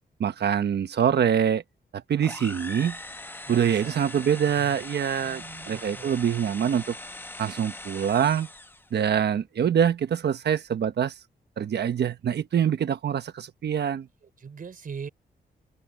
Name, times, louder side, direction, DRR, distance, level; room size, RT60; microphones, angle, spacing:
voice 1, 0.2-1.6 1.9-3.0 3.5-7.0 7.4-8.5 8.9-11.1 11.6-14.1, right 8 dB, 75° right, 1.2 m, -25 dB
sound 1, 2.2-8.9, left 2 dB, 10° left, 1.0 m, -41 dB
voice 2, 3.5-4.1 5.2-6.2 14.2-15.1, right 6 dB, 55° right, 4.1 m, -42 dB
open air
wide cardioid pair, 125°, 18 cm